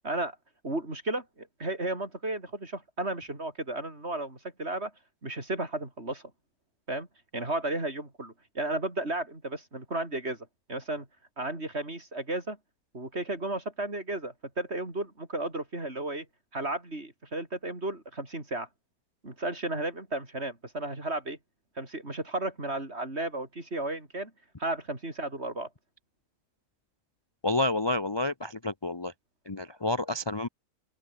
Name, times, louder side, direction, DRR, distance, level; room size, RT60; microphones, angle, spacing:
voice 1, 0.0-0.4 0.6-4.9 5.2-6.2 6.9-7.1 7.3-10.4 10.7-11.1 11.4-12.6 12.9-16.3 16.5-18.7 19.2-21.4 21.8-24.3 24.6-25.7, right 2 dB, 40° right, 5.4 m, -33 dB
voice 2, 27.4-29.1 29.5-30.5, left 2 dB, 20° left, 1.0 m, -29 dB
open air
omnidirectional pair, 1.6 m